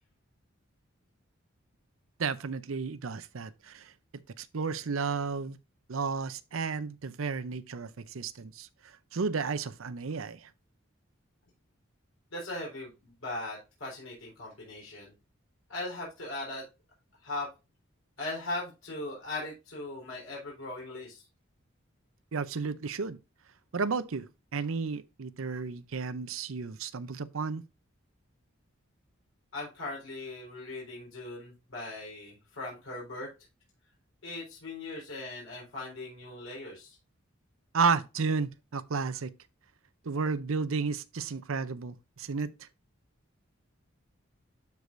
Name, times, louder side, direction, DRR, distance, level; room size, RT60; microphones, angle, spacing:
voice 1, 2.2-3.9 4.4-5.6 5.9-8.7 9.1-10.5 22.3-23.2 23.7-27.6 37.7-39.3 40.0-42.7, right 5 dB, 80° right, 0.6 m, -32 dB
voice 2, 12.3-15.1 15.7-16.7 17.2-17.5 18.2-21.2 29.5-33.3 34.2-37.0, left 2 dB, 75° left, 4.1 m, -39 dB
12.0 x 4.8 x 2.6 m
head